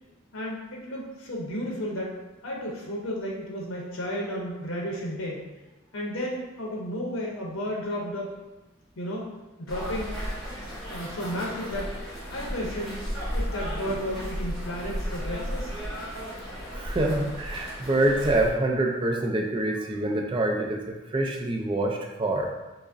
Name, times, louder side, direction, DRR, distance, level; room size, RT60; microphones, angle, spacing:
voice 1, 0.3-2.2 2.4-5.4 5.9-8.3 9.0-9.3 9.6-10.2 10.9-11.9 12.3-13.1 13.3-15.7, equal, 70° left, -2 dB, 0.6 m, -33 dB
sound 1, 9.7-18.5, equal, ahead, 1.1 m, -34 dB
voice 2, 16.7-22.5, right 1 dB, 25° right, 2 dB, 0.3 m, -26 dB
4.6 x 2.0 x 2.5 m, 1.1 s
head